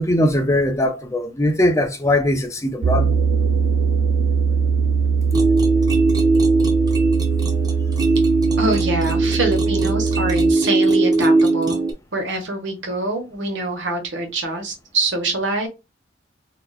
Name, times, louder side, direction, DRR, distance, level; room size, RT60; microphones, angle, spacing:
voice 1, 0.0-3.1, left 1 dB, 15° left, 0.5 m, -20 dB
sound 1, 2.8-10.5, right 5 dB, 60° right, 0.3 m, -21 dB
sound 2, 5.3-11.9, right 3 dB, 20° right, 0.7 m, -19 dB
voice 2, 8.6-11.8 12.1-15.7, right 2 dB, 80° right, 1.2 m, -24 dB
3.9 x 2.8 x 2.3 m
head